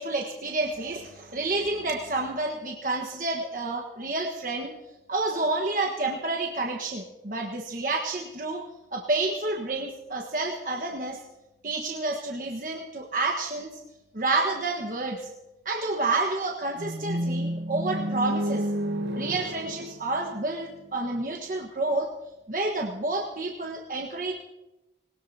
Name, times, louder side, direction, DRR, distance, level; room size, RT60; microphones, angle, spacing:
voice 1, 0.0-4.8 5.1-8.6 8.9-11.2 11.6-13.8 14.1-15.2 15.6-18.6 19.1-22.1 22.5-24.3, right 2 dB, 50° right, 1 dB, 1.4 m, -29 dB
sound 1, 16.8-20.9, equal, 80° right, 1.1 m, -30 dB
20.5 x 19.5 x 2.8 m, 0.95 s
head